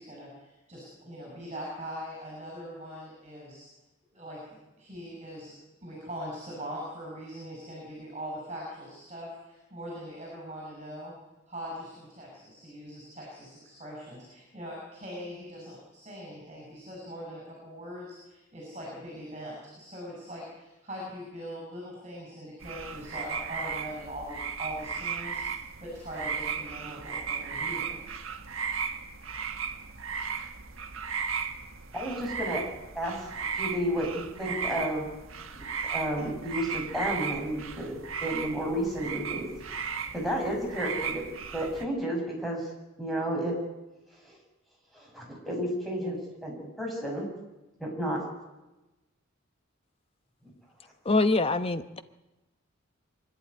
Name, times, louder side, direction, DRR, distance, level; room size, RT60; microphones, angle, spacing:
voice 1, 0.0-3.7 4.1-4.4 4.8-5.5 5.8-11.1 11.5-28.0, equal, 30° right, 7.0 m, -41 dB
sound 1, 22.6-41.9, right 6 dB, 80° right, 1.6 m, -36 dB
voice 2, 31.9-32.6 32.9-33.2 33.5-35.1 35.6-39.5 40.1-41.2 41.5-42.6 43.0-43.5 44.2-44.4 44.9-47.3 47.8-48.2, equal, ahead, 6.0 m, -32 dB
voice 3, 51.0-52.0, left 2 dB, 30° left, 0.9 m, -24 dB
24.5 x 11.5 x 9.5 m
head